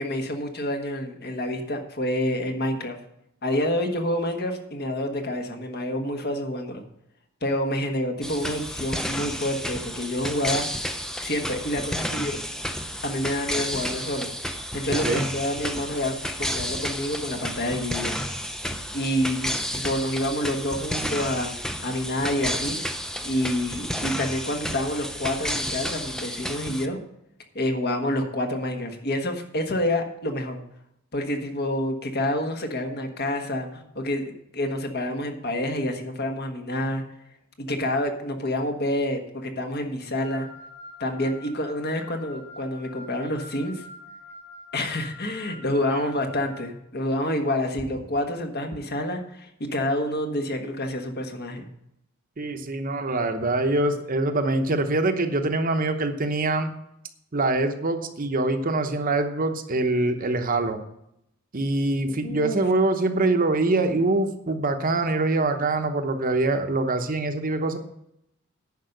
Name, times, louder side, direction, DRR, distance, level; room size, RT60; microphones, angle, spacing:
voice 1, 0.0-3.0 3.4-6.8 7.4-10.7 11.2-12.4 13.0-14.3 14.7-18.2 18.9-21.5 21.8-22.8 23.2-27.0 27.5-30.6 31.1-37.0 37.6-40.5 41.0-43.8 44.7-51.7 62.2-62.6, left 1 dB, 50° left, 4 dB, 1.4 m, -28 dB
sound 1, 8.2-26.9, equal, 5° left, 0.6 m, -31 dB
voice 2, 14.9-15.3 45.9-46.0 52.4-56.7 57.3-60.8 61.5-67.8, right 2 dB, 40° right, 7 dB, 0.9 m, -24 dB
Wind instrument woodwind instrument, 40.2-46.6, left 2 dB, 35° left, 2.2 m, -45 dB
10.5 x 5.4 x 7.9 m, 0.78 s
head